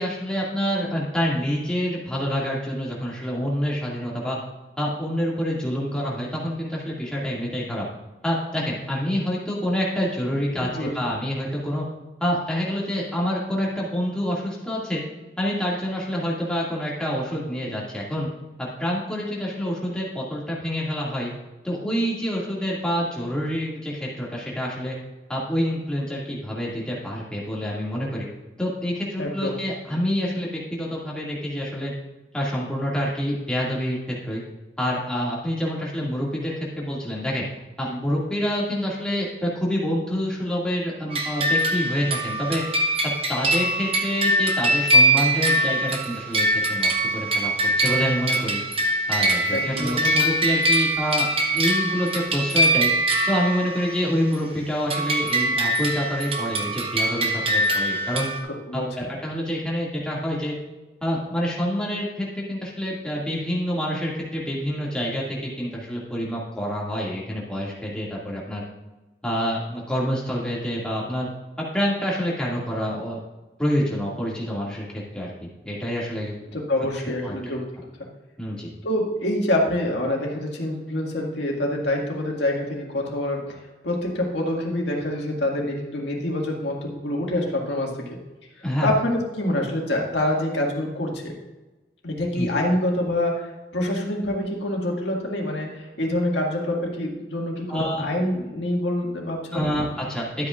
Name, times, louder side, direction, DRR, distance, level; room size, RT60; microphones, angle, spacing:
voice 1, 0.0-4.4 4.8-7.8 8.2-11.8 12.2-15.0 15.4-18.3 18.6-21.3 21.6-24.9 25.3-28.3 28.6-31.9 32.3-34.4 34.8-37.4 37.8-42.6 43.3-48.6 49.1-51.3 51.5-52.9 53.3-58.3 58.7-60.5 61.0-68.6 69.2-71.3 71.6-73.2 73.6-75.3 75.6-76.3 77.2-77.3 78.4-78.7 88.6-88.9 92.3-92.5 97.7-98.0 99.5-100.5, equal, 5° left, -5 dB, 2.2 m, -27 dB
voice 2, 29.2-29.6 37.9-38.0 49.5-50.2 58.7-59.1 76.5-77.7 78.0-78.1 78.8-83.5 83.8-88.2 88.6-91.3 92.0-99.6, left 1 dB, 80° left, -1 dB, 2.1 m, -26 dB
sound 1, 41.1-54.3 54.9-58.4, right 1 dB, 30° right, 1.0 m, -23 dB
12.5 x 8.4 x 2.5 m, 1.1 s
head